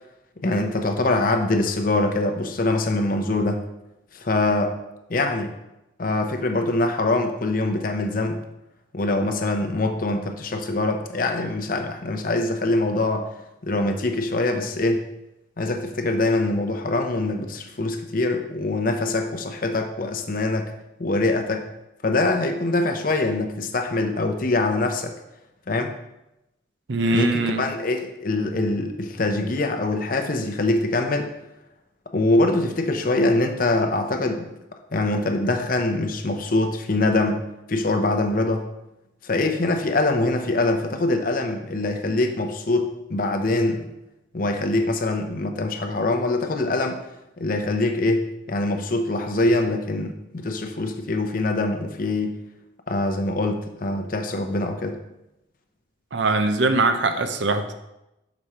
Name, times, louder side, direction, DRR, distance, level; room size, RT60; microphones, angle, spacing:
voice 1, 0.4-3.6 4.1-4.7 5.1-5.5 6.0-8.4 8.9-13.3 13.6-15.1 15.6-20.7 21.0-21.7 22.0-25.1 25.7-25.9 27.1-31.3 32.1-34.5 34.9-38.7 39.2-43.9 44.3-47.0 47.4-52.4 52.9-55.0, left 2 dB, 45° left, 5 dB, 0.7 m, -24 dB
voice 2, 26.9-27.6 56.1-57.7, right 2 dB, 70° right, 7 dB, 0.6 m, -22 dB
6.1 x 5.1 x 4.3 m, 0.91 s
head